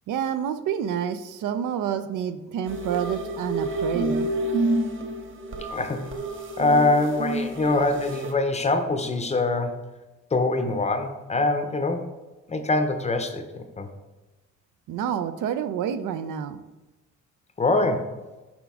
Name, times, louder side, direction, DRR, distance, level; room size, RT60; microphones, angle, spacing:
voice 1, 0.1-4.3 14.9-16.6, right 9 dB, 80° right, 11 dB, 0.5 m, -28 dB
sound 1, 2.7-8.3, right 1 dB, 40° right, 0.8 m, -29 dB
voice 2, 5.6-6.1 6.6-9.8 10.3-12.1 12.5-13.9 17.6-18.1, left 2 dB, 20° left, 7 dB, 0.6 m, -24 dB
7.3 x 4.9 x 3.5 m, 1.1 s
cardioid pair, 130°, 31 cm